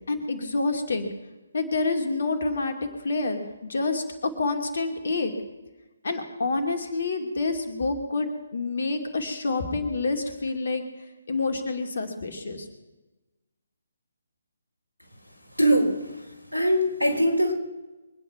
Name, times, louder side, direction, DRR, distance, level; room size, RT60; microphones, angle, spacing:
voice 1, 0.1-1.1 1.5-2.8 3.0-4.0 4.4-5.3 6.0-10.8 11.3-12.7, left 3 dB, 50° left, 5 dB, 2.6 m, -28 dB
voice 2, 15.6-16.2 16.5-17.5, equal, 85° right, 2 dB, 4.1 m, -22 dB
23.5 x 9.8 x 5.8 m, 1.1 s
figure-of-eight pair, 140°, 0 cm